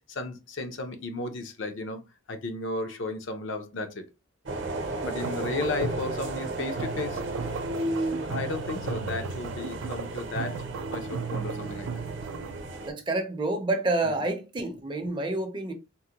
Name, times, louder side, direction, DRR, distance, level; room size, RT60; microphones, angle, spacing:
voice 1, 0.1-2.0 2.3-4.1 5.1-7.2 8.3-10.6 10.9-12.1, left 2 dB, 65° left, 0.5 m, -34 dB
sound 1, 4.4-12.9, right 2 dB, 60° right, 0.7 m, -34 dB
sound 2, 5.0-12.6, right 6 dB, 90° right, 0.4 m, -37 dB
voice 2, 12.9-15.7, right 2 dB, 25° right, 0.5 m, -28 dB
3.7 x 2.1 x 2.8 m
head